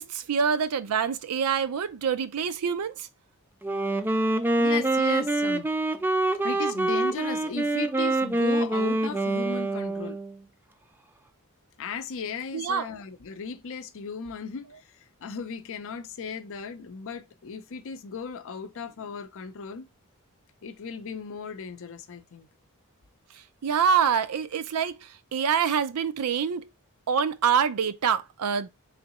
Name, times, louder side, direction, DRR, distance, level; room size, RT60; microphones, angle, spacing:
voice 1, 0.0-3.1 12.5-12.9 23.3-26.7 27.1-28.7, right 7 dB, 80° right, 0.4 m, -26 dB
Wind instrument woodwind instrument, 3.6-10.4, right 2 dB, 10° right, 0.3 m, -25 dB
voice 2, 4.6-5.7 6.4-10.2 11.8-19.8 20.6-22.5, left 5 dB, 65° left, 0.5 m, -36 dB
3.7 x 3.3 x 2.9 m
head